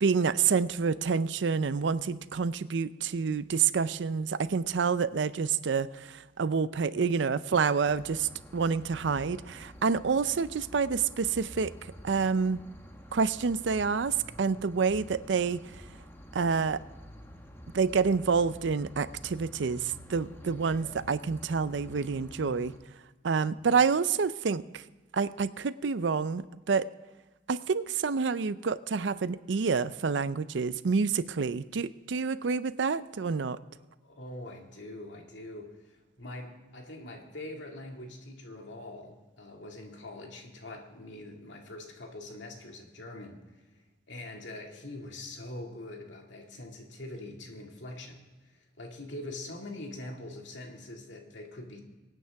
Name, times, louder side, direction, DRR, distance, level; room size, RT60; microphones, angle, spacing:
voice 1, 0.0-11.7 12.0-12.6 13.1-15.6 16.3-16.8 17.7-22.7 23.2-24.8 25.1-26.9 27.5-33.6, right 5 dB, 80° right, 16 dB, 0.5 m, -28 dB
sound 1, 7.8-22.8, equal, 15° left, 1.1 m, -49 dB
voice 2, 34.0-43.4 44.1-48.2 48.8-51.8, left 1 dB, 80° left, 2 dB, 2.2 m, -43 dB
23.5 x 9.3 x 3.5 m, 1.2 s
head